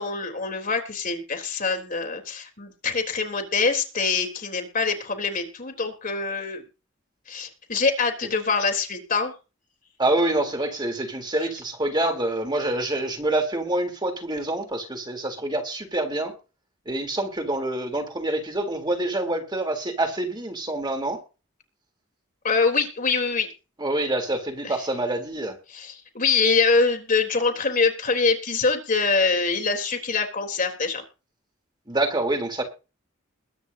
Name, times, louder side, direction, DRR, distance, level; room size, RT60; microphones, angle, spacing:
voice 1, 0.0-6.6 7.3-9.3 22.4-23.5 24.6-24.7 25.7-31.0, left 4 dB, 45° left, 4 dB, 3.6 m, -24 dB
voice 2, 10.0-16.3 16.8-21.2 23.8-25.6 31.9-32.6, right 1 dB, 20° right, 4 dB, 3.4 m, -26 dB
22.0 x 9.9 x 2.8 m, 0.31 s
head